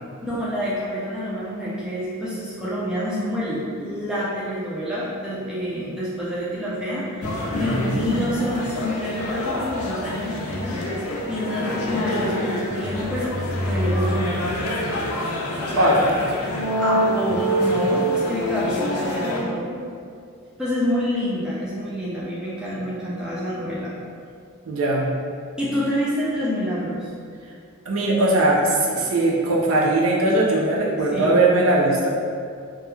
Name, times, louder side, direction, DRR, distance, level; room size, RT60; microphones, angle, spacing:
voice 1, 0.2-13.3 13.6-14.5 16.8-19.8 20.6-23.9 25.6-27.1 31.1-31.4, equal, 5° right, -8 dB, 0.3 m, -27 dB
sound 1, 7.2-19.4, equal, 80° left, 0.4 m, -26 dB
voice 2, 7.6-8.3 15.8-16.1 24.7-25.2 27.9-32.1, right 2 dB, 70° right, -3 dB, 0.4 m, -20 dB
2.2 x 2.0 x 3.0 m, 2.3 s
head